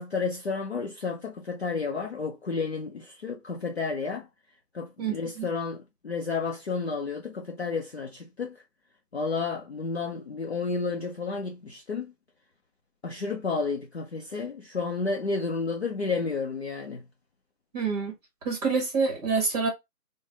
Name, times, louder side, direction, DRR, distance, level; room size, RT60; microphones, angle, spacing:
voice 1, 0.0-4.3 4.7-8.6 9.1-12.1 13.0-17.1, left 4 dB, 45° left, 0.5 m, -31 dB
voice 2, 5.0-5.5 17.7-18.1 18.4-19.7, right 4 dB, 25° right, 1.2 m, -27 dB
3.2 x 2.2 x 3.5 m
figure-of-eight pair, 155°, 47 cm